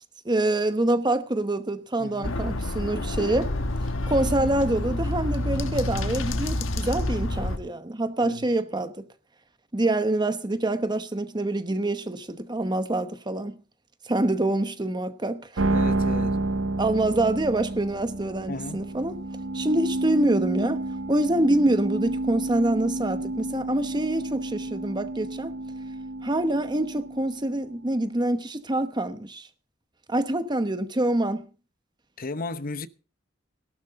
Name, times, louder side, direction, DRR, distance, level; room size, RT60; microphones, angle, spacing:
voice 1, 0.2-3.5 4.0-9.1 9.7-13.6 14.0-15.6 16.8-19.2 19.5-25.6 26.2-29.5 30.1-31.5, right 1 dB, 20° right, 1.0 m, -26 dB
voice 2, 2.0-2.3 8.2-8.4 15.7-16.4 18.5-18.8 32.2-32.9, left 2 dB, 45° left, 0.9 m, -34 dB
sound 1, 2.2-7.6, left 1 dB, 85° left, 1.4 m, -28 dB
sound 2, 15.6-27.9, right 2 dB, 85° right, 1.4 m, -30 dB
17.5 x 12.5 x 3.7 m
head